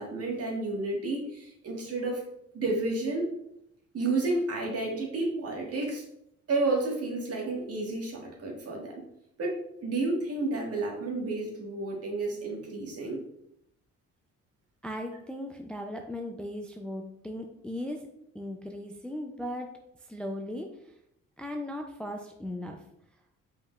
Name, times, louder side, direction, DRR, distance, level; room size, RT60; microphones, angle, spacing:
voice 1, 0.0-2.2 2.5-3.3 3.9-6.0 6.5-8.9 9.4-13.2, right 2 dB, 50° right, -1 dB, 1.5 m, -31 dB
voice 2, 14.8-21.0 21.4-22.9, left 1 dB, 5° left, 3 dB, 0.4 m, -38 dB
5.1 x 3.8 x 2.3 m, 0.76 s
cardioid pair, 90°, 30 cm